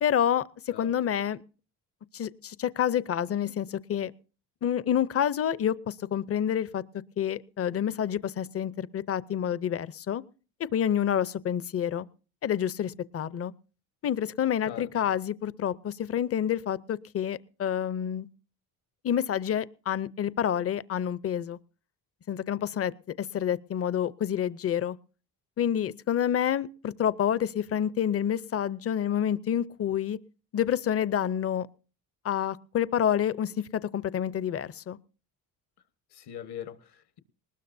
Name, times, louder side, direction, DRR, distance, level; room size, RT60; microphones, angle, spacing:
voice 1, 0.0-1.4 2.1-4.1 4.6-6.8 7.2-10.2 10.6-12.1 12.4-13.5 14.0-18.3 19.0-21.6 22.3-22.9 23.2-25.0 25.6-30.2 30.5-31.7 32.2-35.0, left 9 dB, 35° left, 0.6 m, -28 dB
voice 2, 36.1-37.2, left 10 dB, 75° left, 1.5 m, -41 dB
20.0 x 19.5 x 2.6 m
cardioid pair, 105°, 40 cm